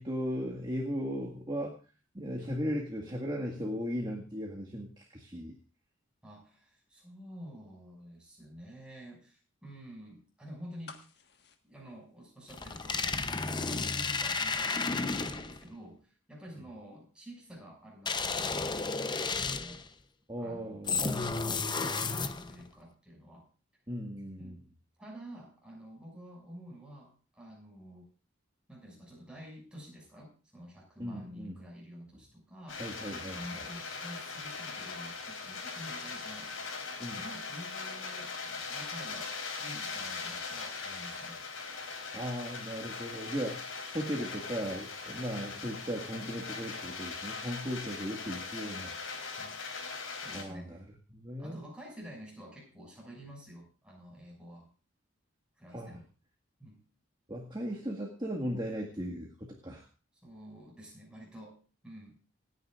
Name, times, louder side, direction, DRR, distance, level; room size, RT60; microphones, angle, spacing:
voice 1, 0.0-1.7 2.1-5.5 20.3-21.1 23.9-24.5 31.0-31.6 32.8-33.4 37.0-37.2 42.1-43.6 43.9-48.9 50.3-50.8 51.1-51.6 55.7-56.0 57.3-59.9, equal, 20° right, -1 dB, 1.9 m, -37 dB
voice 2, 6.2-11.0 11.6-19.8 20.4-23.5 24.4-24.6 25.0-28.1 28.7-32.8 33.1-36.5 37.1-41.4 45.1-45.2 49.3-49.6 50.1-50.8 51.4-54.7 55.6-56.0 56.6-56.8 60.2-62.1, equal, 5° right, -2 dB, 6.4 m, -49 dB
sound 1, 10.8-12.9 13.2-13.3, left 5 dB, 55° left, 1.6 m, -53 dB
sound 2, 12.5-15.6 18.1-19.9 20.9-22.6, left 4 dB, 20° left, 0.7 m, -32 dB
sound 3, 32.7-50.4, left 4 dB, 85° left, 4.1 m, -40 dB
27.5 x 9.7 x 2.5 m, 0.36 s
head